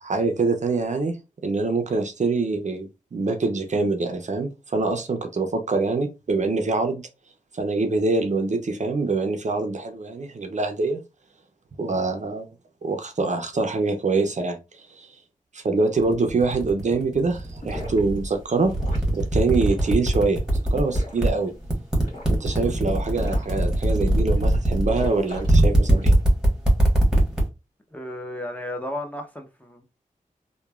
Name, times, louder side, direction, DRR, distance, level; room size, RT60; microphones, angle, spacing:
voice 1, 0.0-1.2 1.4-7.0 7.5-11.0 11.8-12.5 12.8-15.1 15.5-18.7 19.1-20.4 20.7-21.5 22.3-26.1, right 3 dB, 55° right, 0.5 m, -24 dB
sound 1, 16.0-18.3 18.6-21.3 21.6-27.4, right 1 dB, 5° right, 1.2 m, -20 dB
sound 2, 17.4-26.2, left 1 dB, 65° left, 1.5 m, -43 dB
voice 2, 27.9-29.8, left 1 dB, 10° left, 0.7 m, -33 dB
3.0 x 2.2 x 2.3 m
cardioid pair, 55°, 14 cm